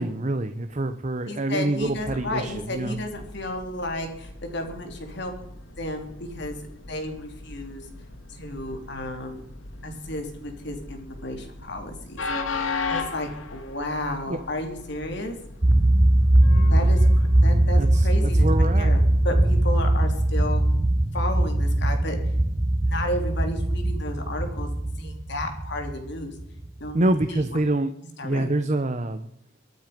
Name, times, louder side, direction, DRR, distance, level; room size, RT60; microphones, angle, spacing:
voice 1, 0.0-3.0 14.3-14.4 17.8-18.9 26.9-27.9 28.2-29.3, right 1 dB, 35° right, 9 dB, 0.9 m, -26 dB
voice 2, 1.3-5.3 5.8-6.6 6.9-7.8 8.4-9.4 9.8-12.2 12.9-15.4 16.7-20.6 21.1-22.2 22.9-24.7 25.0-26.3 26.8-27.4 28.2-28.5, left 1 dB, 60° left, 4 dB, 3.7 m, -32 dB
Train, 1.8-20.3, left 3 dB, 80° left, 2.3 m, -38 dB
sound 1, 15.6-26.9, right 1 dB, 15° right, 0.5 m, -20 dB
23.5 x 9.2 x 5.3 m, 0.76 s
head